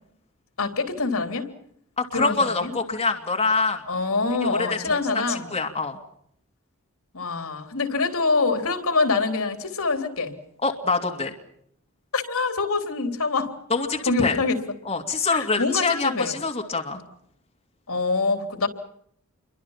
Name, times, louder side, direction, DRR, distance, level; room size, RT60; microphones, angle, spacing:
voice 1, 0.6-1.5 2.1-2.7 3.9-5.6 7.1-10.4 12.1-13.5 14.1-14.6 15.3-16.4 17.9-18.7, left 3 dB, 75° left, 7 dB, 3.6 m, -25 dB
voice 2, 2.0-3.8 4.4-5.0 5.3-6.0 10.6-11.3 13.7-14.4 14.8-17.0, left 4 dB, 25° left, 2 dB, 2.6 m, -25 dB
28.5 x 24.0 x 5.8 m, 0.70 s
head